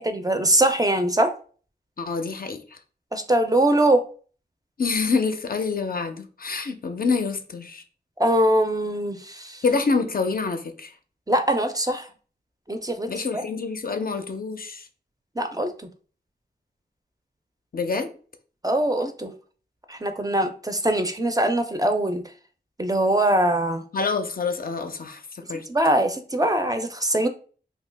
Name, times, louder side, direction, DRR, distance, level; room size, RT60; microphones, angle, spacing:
voice 1, 0.0-1.3 3.1-4.0 8.2-9.6 11.3-12.1 12.7-13.4 15.4-15.7 18.6-19.3 19.9-22.2 22.8-23.8 25.7-27.3, right 1 dB, 20° right, 0.4 m, -22 dB
voice 2, 2.0-2.8 4.8-7.8 9.6-10.9 13.1-14.9 17.7-18.1 23.9-25.2 25.5-25.7, left 4 dB, 55° left, 0.4 m, -26 dB
2.7 x 2.3 x 3.2 m
wide cardioid pair, 60°, 18 cm